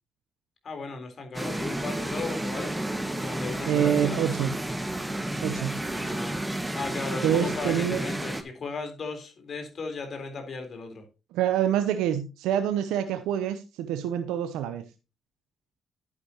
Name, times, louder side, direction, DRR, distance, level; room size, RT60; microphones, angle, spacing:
voice 1, 0.6-2.8 3.1-4.2 5.8-6.4 6.7-11.0, left 4 dB, 55° left, 5 dB, 3.8 m, -36 dB
sound 1, 1.3-8.4, right 1 dB, 10° right, 1.6 m, -31 dB
voice 2, 3.7-4.5 5.4-5.8 7.2-8.0 11.3-14.8, right 10 dB, 85° right, 9 dB, 0.7 m, -26 dB
11.0 x 9.5 x 2.9 m, 0.29 s
supercardioid pair, 50°, 0 cm